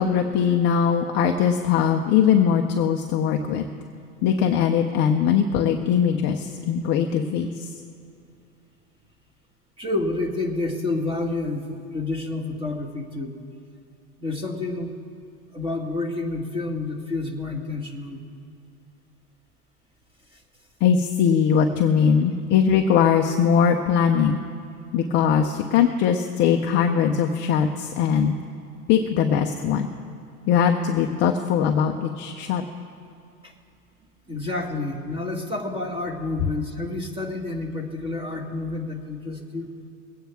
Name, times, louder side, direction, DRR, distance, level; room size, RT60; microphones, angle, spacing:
voice 1, 0.0-3.6 4.2-7.7 20.8-24.4 24.9-28.3 28.9-29.9 30.5-32.6, left 7 dB, 25° left, 3 dB, 0.6 m, -21 dB
voice 2, 9.8-13.4 14.2-14.9 15.5-18.2 33.4-33.5 34.3-39.7, left 2 dB, 10° right, 2 dB, 1.6 m, -29 dB
23.5 x 9.1 x 3.5 m, 2.5 s
hypercardioid pair, 130°, 49 cm